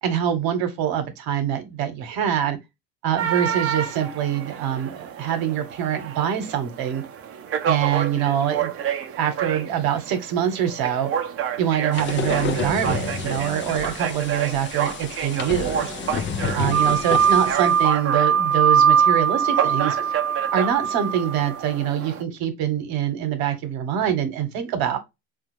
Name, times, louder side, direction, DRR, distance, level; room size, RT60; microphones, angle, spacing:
voice 1, 0.0-2.6 3.0-7.0 7.6-11.1 11.6-15.9 16.5-20.0 20.5-25.0, right 9 dB, 60° right, 1.1 m, -24 dB
sound 1, 3.2-22.2, right 9 dB, 35° right, 0.7 m, -30 dB
sound 2, 11.9-17.8, left 6 dB, 30° left, 0.5 m, -30 dB
sound 3, 16.7-21.5, right 7 dB, 90° right, 0.8 m, -20 dB
3.4 x 2.5 x 3.0 m
hypercardioid pair, 85°, 41 cm